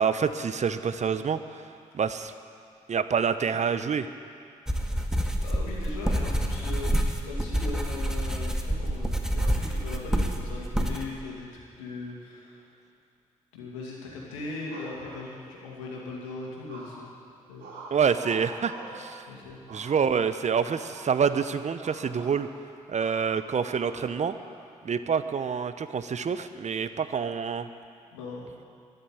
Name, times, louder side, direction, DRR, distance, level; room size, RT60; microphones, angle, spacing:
voice 1, 0.0-1.6 1.9-2.3 2.9-4.1 17.9-19.2 19.7-22.5 22.9-24.4 24.8-27.7, right 6 dB, 45° right, 11 dB, 0.9 m, -27 dB
sound 1, 4.7-11.0, equal, 5° right, 1.8 m, -27 dB
voice 2, 5.4-6.9 7.2-12.7 13.5-17.1 17.5-18.0 18.9-19.6 28.1-28.5, left 3 dB, 90° left, -2 dB, 2.4 m, -39 dB
sound 2, 14.7-15.7 16.7-17.2 17.6-19.0 19.7-20.3 20.7-21.0 21.3-21.5 21.8-22.4 23.0-23.2 23.8-24.5, right 3 dB, 70° right, 3.9 m, -44 dB
13.0 x 10.5 x 9.3 m, 2.4 s
hypercardioid pair, 40°, 16 cm